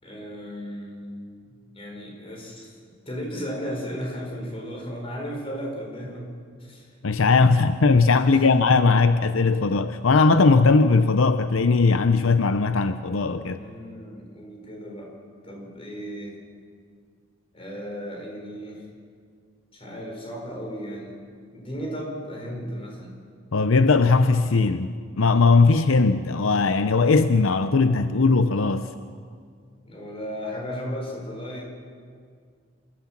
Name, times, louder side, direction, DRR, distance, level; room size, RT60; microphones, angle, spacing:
voice 1, 0.0-2.8 3.0-6.3 6.6-6.9 8.2-8.8 13.5-15.1 15.4-16.4 17.5-18.9 19.7-21.2 21.5-23.2 29.8-31.8, equal, 25° left, 0 dB, 4.8 m, -35 dB
voice 2, 7.0-13.6 23.5-28.9, left 4 dB, 75° left, 10 dB, 0.7 m, -19 dB
27.5 x 14.5 x 7.4 m, 2.1 s
head